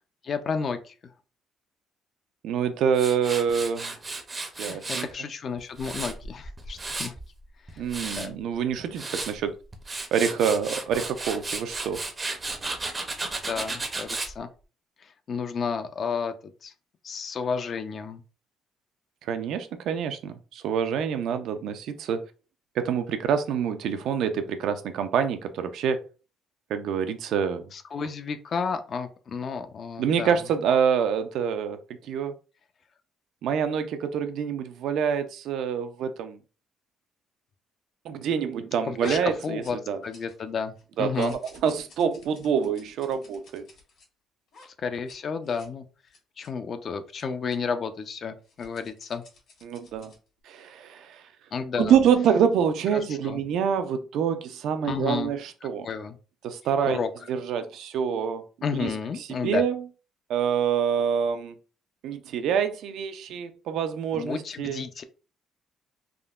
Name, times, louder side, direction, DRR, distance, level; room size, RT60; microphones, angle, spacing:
voice 1, 0.2-0.9 4.6-7.1 7.7-7.8 8.2-8.3 13.5-14.5 15.0-16.7 17.0-18.2 27.7-30.4 38.9-39.8 40.0-41.4 44.6-45.8 46.4-49.2 51.5-51.9 52.9-53.4 54.8-55.3 55.6-56.2 56.8-57.1 58.6-59.6 64.1-65.0, left 5 dB, 45° left, 9 dB, 0.4 m, -32 dB
voice 2, 2.4-3.9 4.6-5.1 7.8-9.5 10.1-12.0 19.2-22.2 22.8-26.0 26.7-27.7 30.0-31.8 32.0-32.3 33.4-36.4 38.0-40.0 41.0-43.6 49.6-50.1 50.5-51.2 51.8-55.9 56.4-57.0 57.3-58.4 58.8-58.9 59.3-59.8 60.3-61.6 62.0-64.8, right 7 dB, 70° right, 9 dB, 0.4 m, -26 dB
Tools, 2.9-5.1 5.6-7.2 7.7-8.3 8.8-9.3 9.7-14.3, right 3 dB, 25° right, 0.5 m, -34 dB
sound 1, 39.0-40.5 40.8-44.1 44.5-44.7 44.9-45.2 45.4-45.7 46.1-46.5 47.1-47.2 47.5-47.6 48.4-50.3, left 3 dB, 65° left, 1.4 m, -49 dB
3.6 x 2.1 x 2.3 m, 0.35 s
cardioid pair, 120°, 0 cm